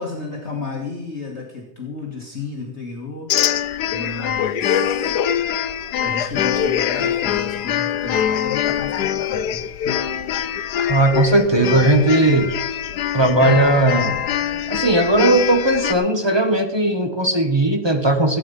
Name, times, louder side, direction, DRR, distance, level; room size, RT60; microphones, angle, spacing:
voice 1, 0.0-3.6 3.9-5.1 6.0-9.6, left 3 dB, 40° left, -1 dB, 2.1 m, -32 dB
sound 1, 3.3-15.9, left 9 dB, 75° left, 1.3 m, -23 dB
voice 2, 10.9-12.5 13.1-14.2 14.7-18.4, right 2 dB, 15° right, 5 dB, 1.2 m, -17 dB
16.0 x 9.1 x 5.5 m, 0.85 s
omnidirectional pair, 1.8 m